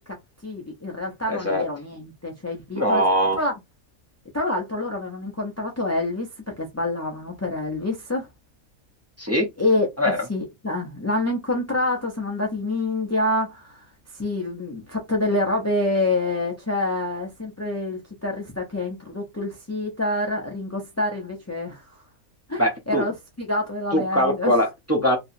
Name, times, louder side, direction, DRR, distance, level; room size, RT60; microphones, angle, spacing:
voice 1, 0.4-3.0 3.3-3.5 4.3-8.3 9.6-13.9 14.1-21.9 22.5-24.5, left 2 dB, 25° left, 0.3 m, -27 dB
voice 2, 1.3-1.6 2.7-3.4 9.2-9.5 10.0-10.2 22.6-23.1 23.9-25.2, equal, 15° right, 0.6 m, -21 dB
3.0 x 2.8 x 2.6 m
omnidirectional pair, 1.5 m